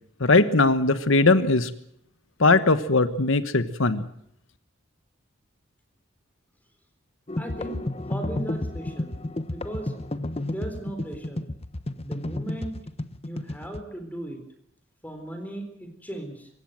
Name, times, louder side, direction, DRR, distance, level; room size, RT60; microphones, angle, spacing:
voice 1, 0.2-1.7 2.4-4.0, left 3 dB, 70° left, 12 dB, 1.3 m, -20 dB
sound 1, 7.3-13.8, left 1 dB, 30° left, 1.0 m, -31 dB
voice 2, 7.4-9.2 9.5-9.9 10.5-11.5 12.0-12.7 13.2-14.4 15.0-16.5, right 1 dB, 10° left, 6 dB, 3.9 m, -37 dB
26.5 x 16.0 x 7.8 m, 0.74 s
head